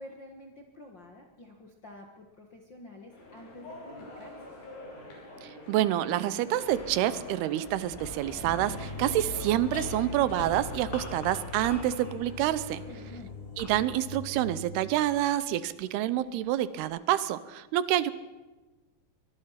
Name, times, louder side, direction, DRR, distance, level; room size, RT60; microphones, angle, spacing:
voice 1, 0.0-4.5 9.1-9.4 12.8-13.4 16.3-16.4, left 1 dB, 50° left, 2 dB, 1.3 m, -49 dB
sound 1, 3.1-13.2, left 1 dB, 90° left, 8.0 m, -46 dB
voice 2, 5.4-12.8 13.6-18.1, right 13 dB, 80° right, 15 dB, 2.8 m, -28 dB
sound 2, 7.1-15.5 16.1-16.9, left 2 dB, 25° left, 3.4 m, -46 dB
sound 3, 7.7-15.5, left 2 dB, 10° left, 4.3 m, -42 dB
23.5 x 21.5 x 5.8 m, 1.2 s
omnidirectional pair, 4.7 m